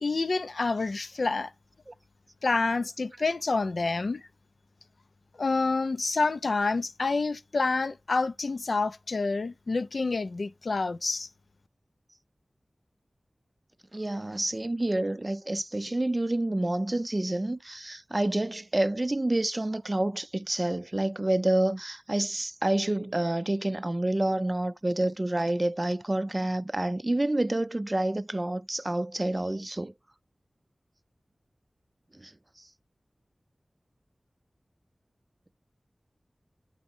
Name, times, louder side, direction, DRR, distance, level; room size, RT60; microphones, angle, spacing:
voice 1, 0.0-1.5 2.4-4.3 5.4-11.3, left 3 dB, 80° left, 0.4 m, -28 dB
voice 2, 13.9-29.9 32.2-32.3, right 1 dB, 30° right, 0.4 m, -28 dB
8.8 x 3.0 x 5.3 m
wide cardioid pair, 55°, 0 cm